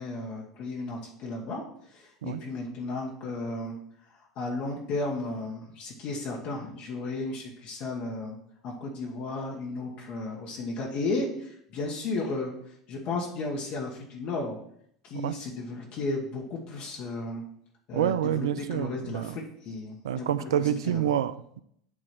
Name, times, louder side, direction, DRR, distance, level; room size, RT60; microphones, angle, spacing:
voice 1, 0.0-1.6 1.9-3.8 4.4-8.4 8.6-12.5 12.9-14.6 15.0-17.4 17.9-21.0, left 2 dB, 50° left, -2 dB, 1.4 m, -34 dB
voice 2, 17.9-19.4 20.0-21.6, right 10 dB, 75° right, 14 dB, 0.4 m, -28 dB
8.5 x 3.0 x 6.0 m, 0.69 s
hypercardioid pair, 85°, 3 cm